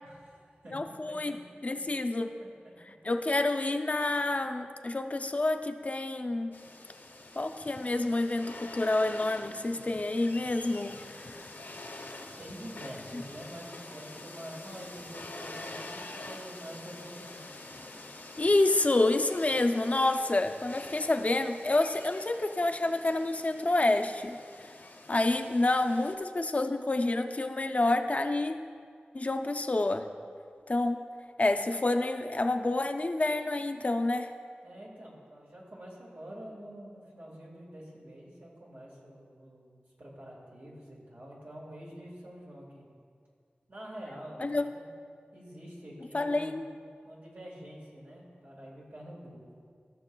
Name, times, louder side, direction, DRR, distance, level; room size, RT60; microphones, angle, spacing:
voice 1, 0.0-1.2 2.4-2.5 12.4-17.7 34.6-42.9 43.7-44.5 44.8-44.9 45.3-46.6 47.1-49.4, equal, 80° right, -4 dB, 1.9 m, -46 dB
voice 2, 0.7-1.4 1.6-2.3 3.0-6.6 7.4-11.5 18.4-24.4 25.1-28.6 29.1-30.1 30.7-31.0 31.4-34.3 44.4-44.6 46.1-46.6, left 2 dB, 40° left, 7 dB, 0.4 m, -28 dB
sound 1, 6.5-26.1, left 2 dB, 70° left, 0.8 m, -46 dB
15.5 x 6.3 x 2.3 m, 2.1 s
wide cardioid pair, 80°, 4 cm